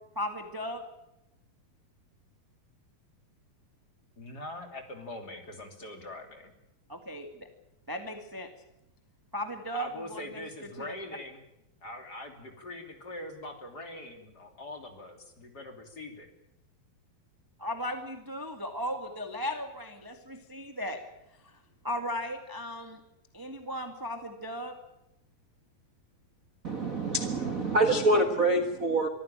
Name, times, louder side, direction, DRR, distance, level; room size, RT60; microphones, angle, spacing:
voice 1, 0.1-0.8 6.9-7.5 7.9-8.5 9.3-10.9 17.6-21.0 21.4-21.6 21.8-23.0 23.3-24.7, equal, 10° right, 6 dB, 1.0 m, -36 dB
voice 2, 4.2-6.5 9.7-11.4 11.8-16.3, left 1 dB, 30° left, 5 dB, 3.2 m, -42 dB
voice 3, 26.6-29.1, right 2 dB, 60° right, 6 dB, 0.8 m, -26 dB
24.5 x 15.0 x 8.9 m, 0.87 s
omnidirectional pair, 4.2 m